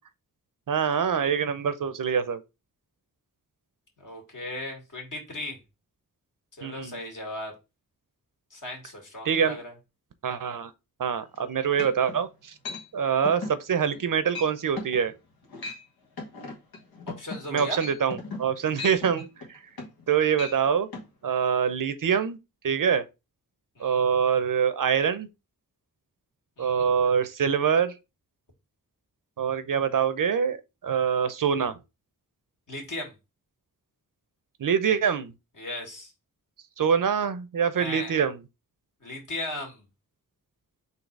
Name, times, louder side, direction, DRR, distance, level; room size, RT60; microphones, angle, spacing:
voice 1, 0.7-2.4 6.6-7.0 9.2-9.6 10.2-10.7 11.0-12.5 12.9-15.1 17.5-19.6 20.1-20.9 21.2-22.4 22.6-23.1 23.8-25.3 26.6-27.9 29.4-31.8 34.6-35.3 36.8-38.4, right 7 dB, 65° right, 0.6 m, -25 dB
voice 2, 4.0-5.6 6.6-7.5 8.5-9.7 17.1-17.8 23.8-24.1 26.6-26.9 32.7-33.1 35.6-36.1 37.8-38.2 39.0-39.8, left 1 dB, 60° left, 2.1 m, -37 dB
sound 1, 11.3-11.4 11.8-12.2 12.6-12.8 13.2-13.6 13.9-14.1 14.3-14.5 14.8-15.0 15.4-15.8 16.2-20.1 20.3-20.6 20.9-21.1, left 3 dB, 90° left, 1.3 m, -37 dB
4.1 x 2.8 x 4.5 m
cardioid pair, 65°, 35 cm